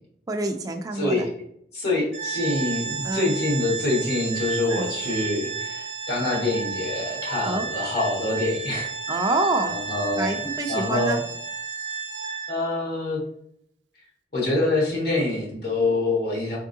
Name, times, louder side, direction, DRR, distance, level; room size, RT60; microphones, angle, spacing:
voice 1, 0.3-1.3 3.0-3.3 4.7-4.9 7.4-7.7 9.1-9.8 10.1-11.2, right 2 dB, 20° right, 3 dB, 0.4 m, -26 dB
voice 2, 0.9-1.3 1.7-9.2 9.7-11.2 12.5-13.2 14.3-16.6, left 2 dB, 60° left, -3 dB, 1.5 m, -26 dB
Organ, 2.1-12.8, right 5 dB, 75° right, 0.6 m, -32 dB
4.4 x 3.6 x 2.7 m, 0.72 s
head